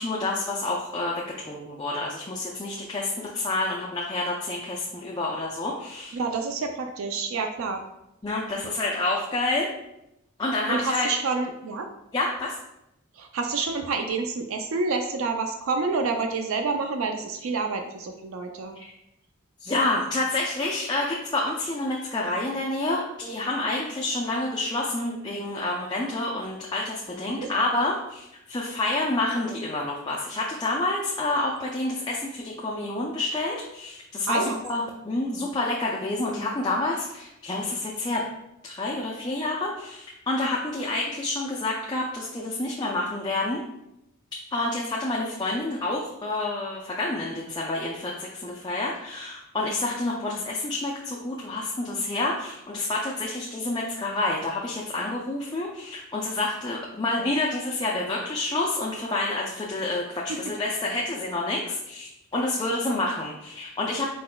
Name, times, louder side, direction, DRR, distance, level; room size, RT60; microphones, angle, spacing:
voice 1, 0.0-6.2 8.2-9.7 10.4-11.1 12.1-12.6 19.6-38.2 38.6-43.6 44.5-64.1, left 2 dB, 20° left, -3 dB, 0.4 m, -28 dB
voice 2, 6.1-7.8 10.7-11.9 13.2-18.8 27.3-27.5 34.3-34.6 60.3-60.4, right 4 dB, 70° right, 5 dB, 0.4 m, -28 dB
4.8 x 3.9 x 2.2 m, 0.85 s
head